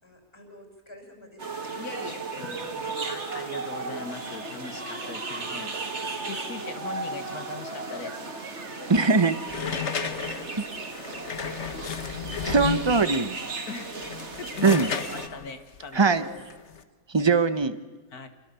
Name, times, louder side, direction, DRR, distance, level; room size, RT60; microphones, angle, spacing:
voice 1, 0.0-3.1 8.1-8.3 8.8-9.5 9.8-12.8 13.8-14.0 16.0-16.4, left 2 dB, 15° left, 3 dB, 5.5 m, -49 dB
sound 1, 1.4-15.3, right 3 dB, 45° right, 2.2 m, -35 dB
voice 2, 1.7-2.7 3.0-5.7 6.1-8.2 9.0-9.1 13.7-14.0 14.4-16.2 18.1-18.3, left 4 dB, 65° left, 8 dB, 2.2 m, -40 dB
voice 3, 8.9-9.3 12.4-13.4 14.6-14.9 15.9-16.2 17.1-17.8, right 4 dB, 20° right, 11 dB, 0.8 m, -21 dB
sound 2, 9.5-13.2 13.9-16.8, left 7 dB, 45° left, 1.3 m, -33 dB
28.0 x 22.0 x 7.0 m, 1.4 s
omnidirectional pair, 1.7 m